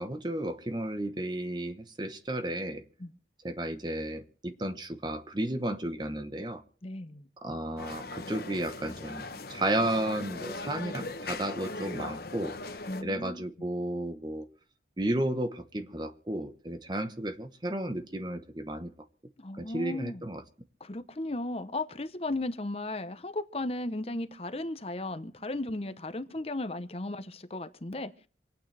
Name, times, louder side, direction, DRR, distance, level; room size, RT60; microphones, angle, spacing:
voice 1, 0.0-2.8 3.4-6.6 7.4-12.5 13.0-14.5 15.0-18.9 19.6-20.4, right 1 dB, 25° right, 1.1 m, -33 dB
voice 2, 6.8-7.3 12.9-13.4 19.4-20.2 20.8-28.1, left 2 dB, 35° left, 0.9 m, -35 dB
Mumbai - Market, 7.8-13.0, left 3 dB, 55° left, 1.1 m, -39 dB
27.0 x 9.1 x 3.4 m
head